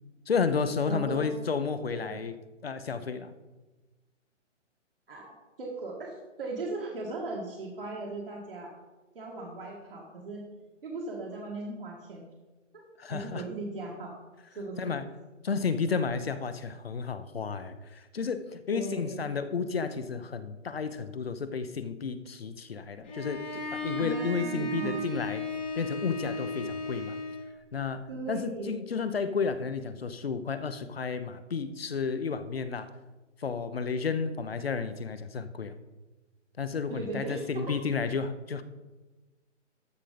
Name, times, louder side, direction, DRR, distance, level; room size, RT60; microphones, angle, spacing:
voice 1, 0.3-2.3 2.6-3.3 13.0-13.5 14.8-15.0 15.4-25.4 25.8-27.2 27.7-32.9 33.4-35.8 36.6-38.6, left 5 dB, 50° left, 11 dB, 0.7 m, -32 dB
voice 2, 0.9-1.3 1.9-2.2 5.1-5.3 5.6-8.8 9.1-10.4 10.8-12.2 12.7-12.8 13.1-14.1 14.5-14.8 18.7-19.2 24.0-25.0 28.1-28.8 36.9-37.7, right 2 dB, 45° right, -3 dB, 2.0 m, -38 dB
Bowed string instrument, 23.0-27.5, left 1 dB, 10° left, 0.9 m, -35 dB
13.5 x 5.2 x 5.1 m, 1.2 s
hypercardioid pair, 180°, 37 cm